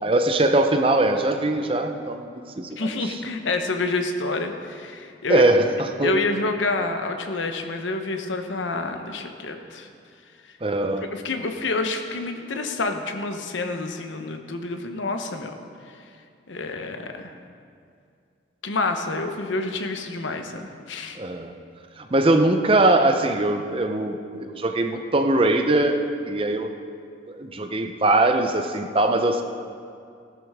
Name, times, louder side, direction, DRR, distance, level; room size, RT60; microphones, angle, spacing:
voice 1, 0.0-2.3 2.6-3.2 5.3-6.2 10.6-11.0 21.2-21.5 22.0-26.7 27.4-29.4, right 2 dB, 30° right, 5 dB, 0.6 m, -21 dB
voice 2, 2.8-5.4 6.0-9.9 11.1-15.6 16.5-17.3 18.6-21.2, left 3 dB, 80° left, 6 dB, 0.9 m, -28 dB
14.5 x 12.0 x 3.6 m, 2.3 s
head